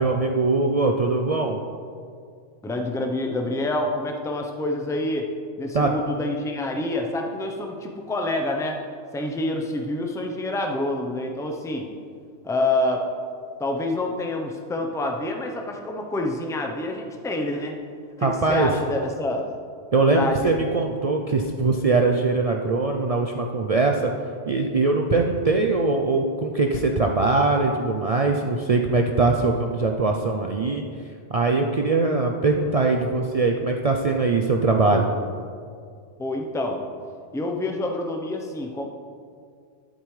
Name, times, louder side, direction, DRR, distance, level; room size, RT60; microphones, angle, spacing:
voice 1, 0.0-1.6 5.7-5.9 18.2-18.7 19.9-24.1 24.5-30.8 31.3-35.0, right 3 dB, 70° right, 2 dB, 0.3 m, -21 dB
voice 2, 2.6-5.3 5.6-8.8 9.1-11.9 12.4-13.1 13.6-17.8 18.2-19.5 20.1-20.7 36.2-36.8 37.3-38.9, left 2 dB, 5° left, 2 dB, 0.5 m, -27 dB
12.0 x 8.2 x 3.2 m, 2.2 s
omnidirectional pair, 1.3 m